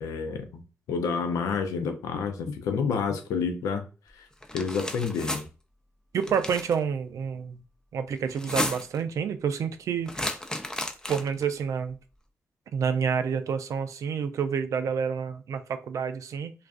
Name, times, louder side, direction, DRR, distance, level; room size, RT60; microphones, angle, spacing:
voice 1, 0.0-0.6 0.9-3.8 4.2-4.3 4.5-5.5, left 5 dB, 80° left, 0.4 m, -29 dB
sound 1, 4.4-5.4 6.2-6.7 8.3-9.0 10.1-11.4, left 1 dB, 10° left, 0.5 m, -33 dB
voice 2, 6.1-7.6 7.9-10.3 11.1-12.0 12.7-16.5, right 6 dB, 70° right, 0.3 m, -29 dB
2.3 x 2.3 x 2.4 m
supercardioid pair, 40°, 6 cm